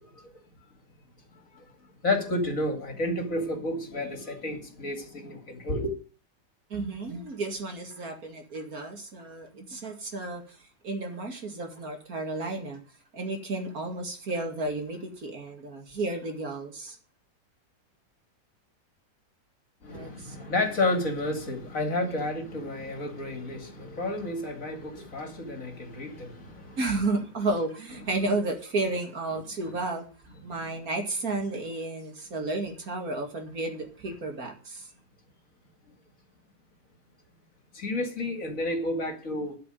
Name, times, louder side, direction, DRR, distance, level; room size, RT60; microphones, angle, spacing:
voice 1, 0.0-0.4 1.5-1.6 2.0-5.9 19.8-26.8 37.7-39.6, left 2 dB, 50° left, 2.8 m, -31 dB
voice 2, 6.7-12.8 13.1-17.0 19.9-20.5 22.0-22.2 26.8-30.1 30.4-34.9, right 2 dB, 55° right, 2.7 m, -32 dB
13.0 x 6.2 x 9.1 m
omnidirectional pair, 1.8 m